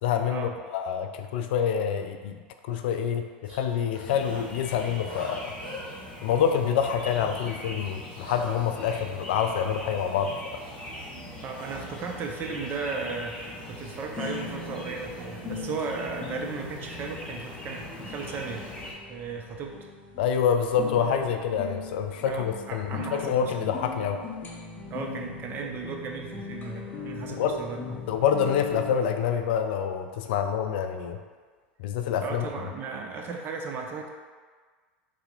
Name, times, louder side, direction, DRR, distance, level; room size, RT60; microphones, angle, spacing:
voice 1, 0.0-2.4 2.7-5.5 6.2-10.4 20.2-24.2 27.4-27.6 28.1-31.2 31.8-32.5, left 8 dB, 70° left, 7 dB, 0.3 m, -27 dB
sound 1, 2.9-3.0 3.4-3.6 3.9-5.9 6.2-6.7 7.0-7.2 7.8-9.8 10.3-11.1 11.5-13.8 14.2-14.5, equal, 80° right, 1.0 m, -46 dB
sound 2, 4.0-18.9, left 1 dB, 15° left, 1.1 m, -41 dB
voice 2, 11.4-18.7 19.1-19.8 22.2-23.7 24.9-28.0 32.2-34.1, right 4 dB, 40° right, 2 dB, 0.6 m, -35 dB
sound 3, 11.7-29.0, left 5 dB, 30° left, 0.7 m, -40 dB
3.2 x 2.9 x 3.8 m, 1.5 s
hypercardioid pair, 85°, 6 cm